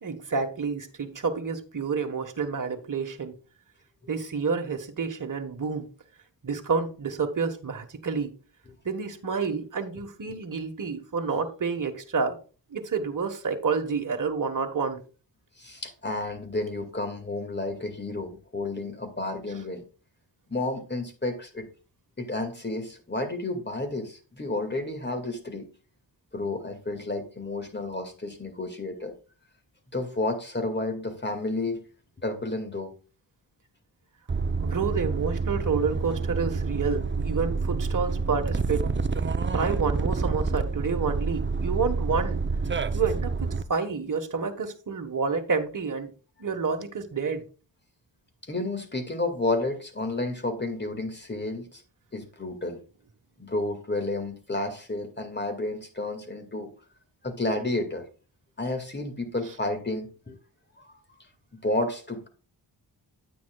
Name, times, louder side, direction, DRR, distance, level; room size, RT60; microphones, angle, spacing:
voice 1, 0.0-3.3 4.1-5.9 6.4-8.3 8.8-12.4 12.7-15.0 34.6-38.9 39.4-42.4 42.9-46.1 46.4-47.4, right 5 dB, 45° right, 1.5 m, -29 dB
voice 2, 15.6-19.9 20.5-21.7 22.2-25.7 26.3-29.1 29.9-31.8 32.2-32.9 48.4-51.8 52.1-52.8 53.4-56.7 57.2-58.1 58.6-60.4 60.8-61.0 61.5-62.3, left 2 dB, 25° left, 2.2 m, -31 dB
sound 1, 34.3-43.6, right 4 dB, 25° right, 0.7 m, -28 dB
9.4 x 9.1 x 2.4 m
cardioid pair, 50°, 45 cm